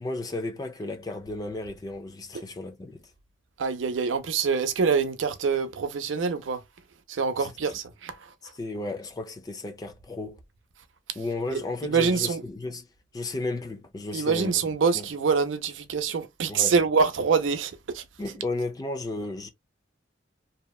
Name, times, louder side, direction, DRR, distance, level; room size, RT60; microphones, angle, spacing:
voice 1, 0.0-3.1 8.6-10.4 11.2-12.9 13.1-14.5 15.0-15.1 16.5-16.7 18.2-19.5, left 2 dB, 20° left, 0.3 m, -33 dB
voice 2, 3.6-6.6 7.1-8.5 11.1-11.2 11.5-12.4 14.1-18.1, right 5 dB, 85° right, 0.5 m, -26 dB
2.8 x 2.1 x 2.2 m
head